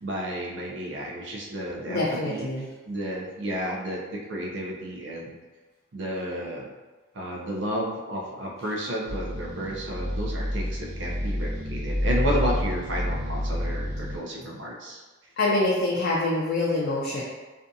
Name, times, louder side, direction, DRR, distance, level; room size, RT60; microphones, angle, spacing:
voice 1, 0.0-2.5 2.9-5.4 5.9-6.7 7.1-15.0, equal, 60° right, -2 dB, 0.5 m, -32 dB
voice 2, 1.9-2.7 15.4-17.2, left 2 dB, 50° left, -5 dB, 0.4 m, -25 dB
sound 1, 9.1-14.2, equal, 85° right, 0.9 m, -29 dB
2.6 x 2.3 x 2.6 m, 1.2 s
head